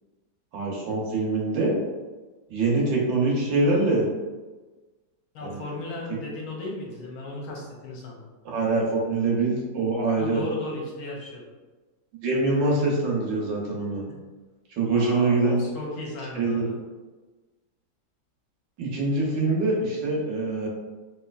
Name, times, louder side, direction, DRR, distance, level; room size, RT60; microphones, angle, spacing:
voice 1, 0.5-1.7 2.5-4.1 5.4-5.6 6.1-6.2 8.4-10.4 12.2-14.0 14.8-15.6 16.3-16.7 18.8-20.7, right 3 dB, 80° right, -3 dB, 1.5 m, -24 dB
voice 2, 5.3-8.2 10.2-11.5 14.9-16.8, left 2 dB, 65° left, -2 dB, 1.0 m, -35 dB
3.1 x 2.8 x 2.3 m, 1.3 s
omnidirectional pair, 1.9 m